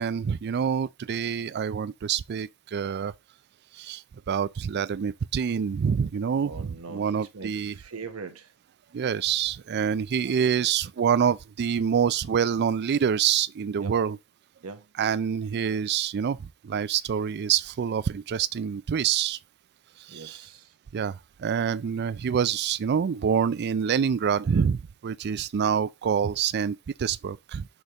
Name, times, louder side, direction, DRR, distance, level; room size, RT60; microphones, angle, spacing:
voice 1, 0.0-3.1 3.8-4.0 4.3-7.7 8.9-14.2 15.0-19.4 20.1-20.4 20.9-27.7, right 7 dB, 50° right, 0.4 m, -26 dB
voice 2, 6.4-8.5 13.8-14.0 14.6-14.9 20.1-20.7, right 4 dB, 75° right, 1.0 m, -41 dB
6.2 x 5.1 x 3.0 m
head